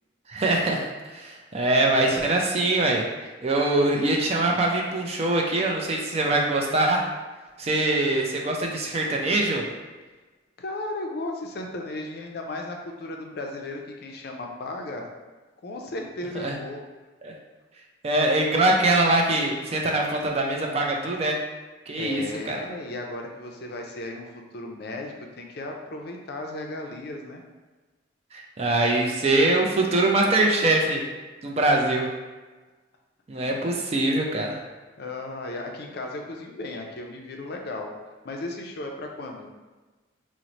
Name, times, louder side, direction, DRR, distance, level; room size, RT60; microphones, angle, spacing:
voice 1, 0.3-3.1 3.4-7.1 7.6-9.7 16.3-16.6 17.2-17.3 18.0-21.4 21.9-22.6 28.3-31.0 31.4-32.1 33.3-34.6, right 2 dB, 35° right, 0 dB, 0.4 m, -23 dB
voice 2, 10.6-15.1 15.6-16.8 22.0-27.4 33.3-33.6 35.0-37.9 38.2-39.5, left 2 dB, 55° left, 2 dB, 0.4 m, -35 dB
3.0 x 2.1 x 3.8 m, 1.2 s
head